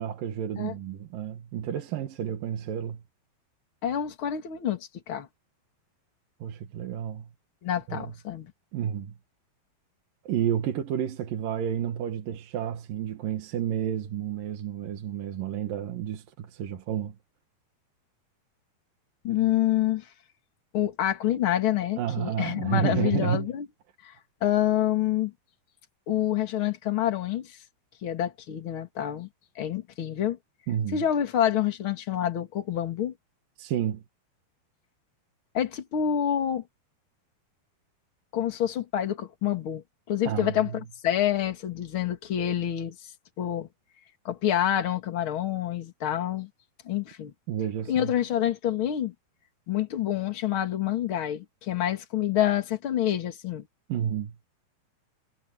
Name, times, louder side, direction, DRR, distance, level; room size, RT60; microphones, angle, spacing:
voice 1, 0.0-3.0 6.4-7.3 7.9-8.1 8.7-9.1 10.2-17.2 22.0-23.5 30.7-31.0 33.6-34.0 40.3-40.6 47.5-48.1 53.9-54.3, right 10 dB, 65° right, 3.0 m, -30 dB
voice 2, 3.8-5.3 7.6-8.5 19.2-20.1 20.7-23.7 24.0-24.1 24.4-25.3 26.1-27.6 28.0-29.3 29.6-30.4 30.9-33.1 35.5-36.6 38.3-43.0 43.4-43.7 44.2-46.5 46.8-47.3 47.9-49.1 49.7-53.7, left 11 dB, 40° left, 2.3 m, -27 dB
omnidirectional pair, 4.6 m